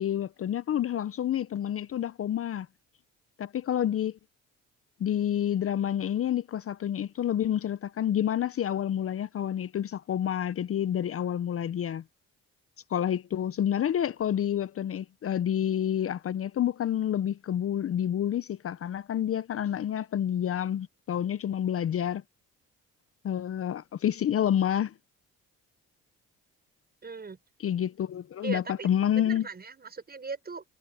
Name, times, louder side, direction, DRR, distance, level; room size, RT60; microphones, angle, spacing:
voice 1, 0.0-2.7 3.4-4.2 5.0-12.0 12.9-22.2 23.2-24.9 27.6-29.5, left 10 dB, 50° left, 0.7 m, -28 dB
voice 2, 27.0-27.4 28.4-30.6, right 4 dB, 30° right, 6.2 m, -39 dB
cardioid pair, 90°, 30 cm